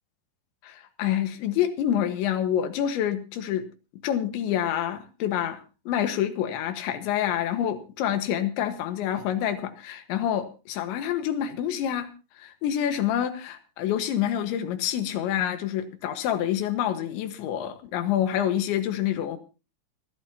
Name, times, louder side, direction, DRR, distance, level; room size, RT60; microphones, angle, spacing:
voice 1, 0.6-3.7 4.0-5.6 5.9-12.1 12.4-19.4, left 10 dB, 85° left, 8 dB, 3.7 m, -27 dB
27.5 x 12.0 x 2.8 m, 0.32 s
omnidirectional pair, 5.1 m